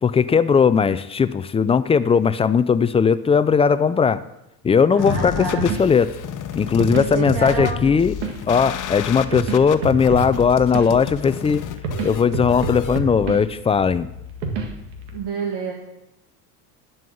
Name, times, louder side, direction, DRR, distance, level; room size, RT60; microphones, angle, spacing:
voice 1, 0.0-4.2 4.6-6.1 6.5-8.1 8.5-11.6 12.0-14.1, left 6 dB, 15° left, 15 dB, 0.3 m, -18 dB
voice 2, 4.9-5.7 6.9-8.0 15.1-15.7, right 4 dB, 55° right, -2 dB, 2.2 m, -29 dB
sound 1, 5.0-13.0, left 9 dB, 40° left, 1.0 m, -32 dB
sound 2, 5.1-15.2, right 3 dB, 80° right, 2.0 m, -30 dB
11.0 x 5.6 x 7.8 m, 0.88 s
hypercardioid pair, 80°, 48 cm